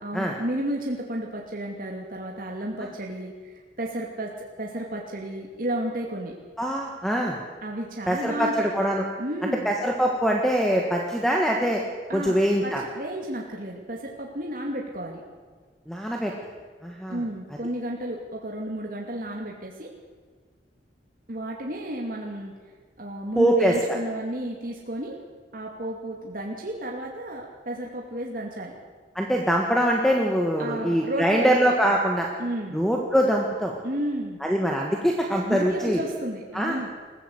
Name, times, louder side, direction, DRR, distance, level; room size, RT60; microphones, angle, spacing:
voice 1, 0.0-4.3 4.6-6.3 7.6-8.7 9.2-9.7 12.1-12.4 12.6-15.2 17.1-19.9 21.3-22.5 23.0-25.2 25.5-28.7 30.6-31.5 31.8-32.0 32.4-32.8 33.8-34.4 35.4-36.9, right 1 dB, 50° right, -1 dB, 2.5 m, -32 dB
voice 2, 6.6-7.4 8.1-9.0 9.7-11.8 12.1-12.8 15.9-16.3 16.8-17.2 23.4-23.7 29.2-32.3 32.7-33.7 34.4-36.0 36.5-36.8, equal, ahead, 0 dB, 1.7 m, -23 dB
22.0 x 15.5 x 8.0 m, 1.5 s
head